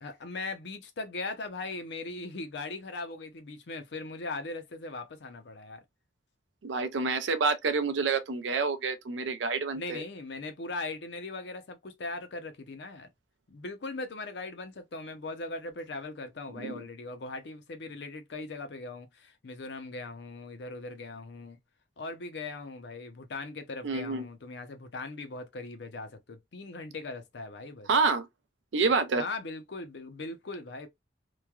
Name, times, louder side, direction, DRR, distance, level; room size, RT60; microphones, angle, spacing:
voice 1, 0.0-5.8 9.8-13.1 13.5-21.6 22.0-27.9 29.2-30.9, left 3 dB, 70° left, 0.6 m, -39 dB
voice 2, 6.6-10.0 16.5-16.8 23.8-24.3 27.9-28.3 28.7-29.2, right 4 dB, 85° right, 0.5 m, -28 dB
3.1 x 2.2 x 2.2 m
head